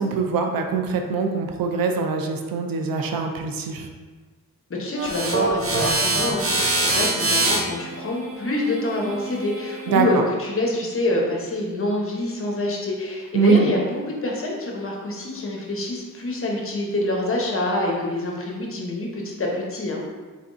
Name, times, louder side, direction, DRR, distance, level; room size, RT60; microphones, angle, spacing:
voice 1, 0.0-3.9 9.9-10.2 13.3-13.7, right 4 dB, 75° right, 4 dB, 0.5 m, -22 dB
voice 2, 4.7-20.0, left 2 dB, 40° left, -1 dB, 0.9 m, -26 dB
sound 1, 5.0-10.1, right 2 dB, 40° right, 0.8 m, -25 dB
3.9 x 3.3 x 2.6 m, 1.4 s
cardioid pair, 75°, 35 cm